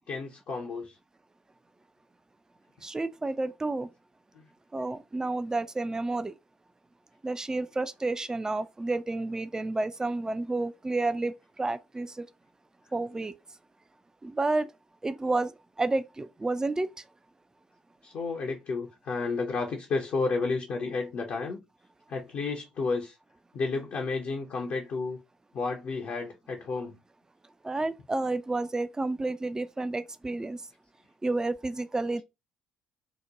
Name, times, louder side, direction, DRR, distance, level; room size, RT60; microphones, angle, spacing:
voice 1, 0.1-1.0 4.3-4.5 13.2-13.3 18.0-21.6 22.1-23.2 23.5-25.2 25.5-27.0, left 4 dB, 50° left, 0.6 m, -31 dB
voice 2, 2.8-3.9 4.7-6.3 7.2-12.3 12.9-13.3 14.2-14.7 15.0-15.5 15.8-16.9 27.6-30.6 31.2-32.2, right 2 dB, 15° right, 0.4 m, -30 dB
2.9 x 2.1 x 3.7 m
figure-of-eight pair, 50°, 4 cm